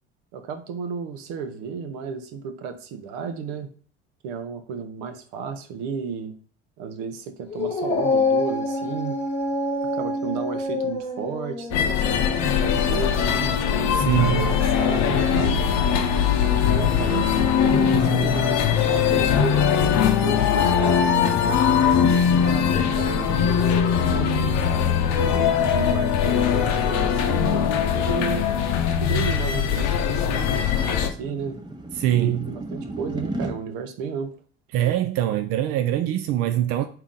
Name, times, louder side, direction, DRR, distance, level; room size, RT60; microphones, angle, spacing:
voice 1, 0.3-3.7 4.2-6.4 6.8-9.2 9.9-12.3 12.6-13.5 14.2-15.6 16.4-19.6 20.2-24.3 25.2-28.7 29.0-31.6 32.2-34.3, right 6 dB, 65° right, 0.8 m, -33 dB
Dog, 7.5-14.1, left 2 dB, 20° left, 1.2 m, -27 dB
sound 1, 11.7-31.1, left 8 dB, 55° left, 0.7 m, -21 dB
voice 2, 13.9-14.5 32.0-32.5 34.7-36.8, right 12 dB, 50° right, 0.4 m, -23 dB
sound 2, 28.1-33.5, right 1 dB, 15° right, 0.9 m, -37 dB
3.5 x 2.9 x 3.6 m
hypercardioid pair, 70°, 32 cm